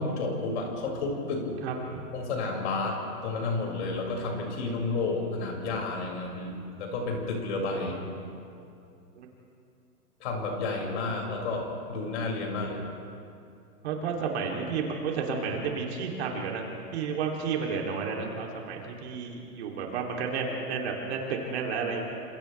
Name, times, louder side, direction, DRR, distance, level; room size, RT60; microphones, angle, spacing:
voice 1, 0.0-1.4 2.1-7.9 10.2-12.8, left 3 dB, 45° left, -1 dB, 6.2 m, -31 dB
voice 2, 1.6-2.0 7.8-7.9 9.1-9.3 13.8-16.6 16.9-22.0, right 5 dB, 40° right, 0 dB, 3.2 m, -31 dB
30.0 x 27.0 x 3.4 m, 2.5 s
hypercardioid pair, 150°, 48 cm